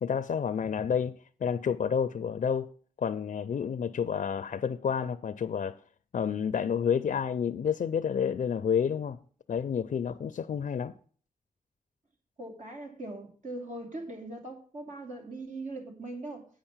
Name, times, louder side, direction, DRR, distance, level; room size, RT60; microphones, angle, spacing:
voice 1, 0.0-1.2 1.4-2.7 3.0-5.8 6.1-9.2 9.5-10.9, left 7 dB, 70° left, 0.4 m, -29 dB
voice 2, 12.4-16.5, right 2 dB, 65° right, 2.8 m, -40 dB
8.9 x 5.1 x 7.2 m
wide cardioid pair, 85°, 14 cm